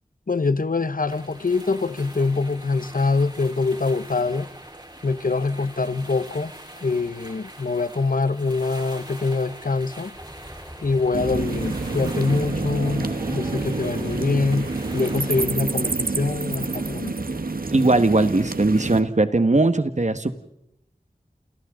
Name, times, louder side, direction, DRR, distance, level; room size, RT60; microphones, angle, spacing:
voice 1, 0.3-4.5 5.0-6.5 6.8-10.1 10.8-17.1, left 3 dB, 75° left, 0.9 m, -24 dB
sound 1, 1.1-15.4, right 1 dB, 30° right, 4.3 m, -43 dB
Train, 10.1-18.3, equal, ahead, 4.4 m, -42 dB
sound 2, 11.1-19.0, right 3 dB, 85° right, 1.4 m, -28 dB
voice 2, 17.7-20.3, right 2 dB, 55° right, 1.7 m, -19 dB
29.0 x 28.5 x 3.9 m
wide cardioid pair, 45°, 15 cm